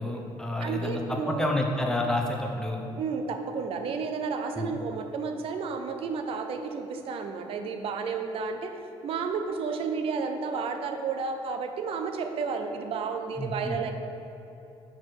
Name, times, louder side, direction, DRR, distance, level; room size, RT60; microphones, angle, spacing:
voice 1, 0.0-2.8 4.5-4.7 13.4-13.8, left 1 dB, 5° left, 1 dB, 0.7 m, -29 dB
voice 2, 0.6-1.5 3.0-8.7 9.0-13.9, right 5 dB, 60° right, 6 dB, 0.6 m, -32 dB
6.4 x 4.4 x 4.7 m, 3.0 s
cardioid pair, 110°, 11 cm